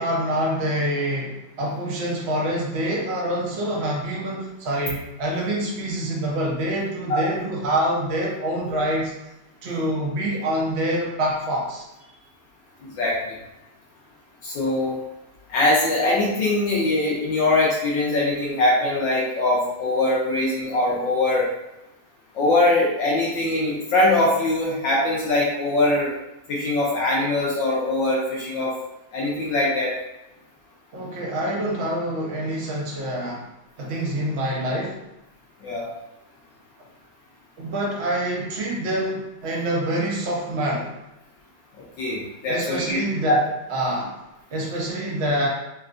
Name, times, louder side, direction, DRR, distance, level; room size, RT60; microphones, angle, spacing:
voice 1, 0.0-9.1 9.6-11.8 30.9-33.5 33.8-35.0 37.6-40.9 42.5-43.4 43.7-44.1 44.5-45.5, right 1 dB, 60° right, -3 dB, 0.6 m, -26 dB
voice 2, 14.4-15.0 15.5-21.5 22.3-26.1 26.5-28.7 29.1-29.9 35.6-35.8 42.0-43.0 43.3-43.4, left 2 dB, 65° left, -5 dB, 1.4 m, -22 dB
5.5 x 2.2 x 2.5 m, 0.94 s
omnidirectional pair, 2.4 m